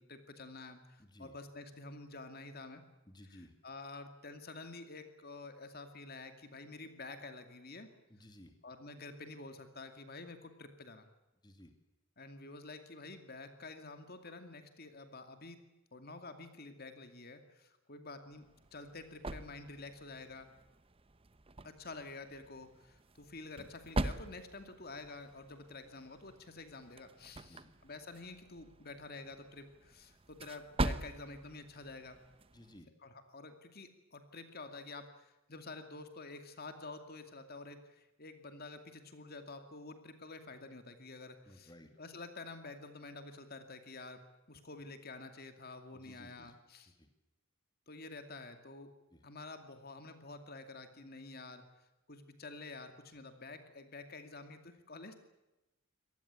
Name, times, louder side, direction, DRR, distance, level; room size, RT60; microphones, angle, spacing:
voice 1, 0.0-2.8 3.3-7.9 8.6-11.0 12.2-15.6 15.9-18.4 18.7-20.5 21.6-32.2 33.0-41.7 42.0-44.2 44.5-46.9 47.9-48.9 49.2-51.6 52.1-55.2, left 3 dB, 45° left, 7 dB, 2.5 m, -49 dB
voice 2, 1.0-1.3 3.1-3.5 8.1-8.5 11.4-11.7 27.4-27.7 32.5-32.9 41.5-41.9 45.9-46.5 46.9-47.1 49.1-49.2, left 1 dB, 20° left, 6 dB, 2.5 m, -57 dB
sound 1, 18.3-32.8, right 2 dB, 25° right, 0.9 m, -43 dB
25.5 x 19.0 x 8.4 m, 0.99 s
head